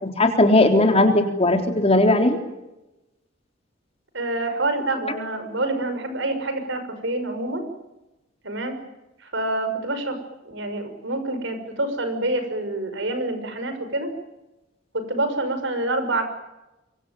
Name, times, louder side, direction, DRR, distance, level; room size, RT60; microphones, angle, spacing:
voice 1, 0.0-2.4, left 2 dB, 30° left, 5 dB, 3.7 m, -18 dB
voice 2, 4.1-7.6 8.4-8.7 9.3-10.2 10.5-14.1 14.9-16.3, right 2 dB, 70° right, 8 dB, 6.1 m, -27 dB
25.0 x 23.5 x 9.2 m, 0.96 s
head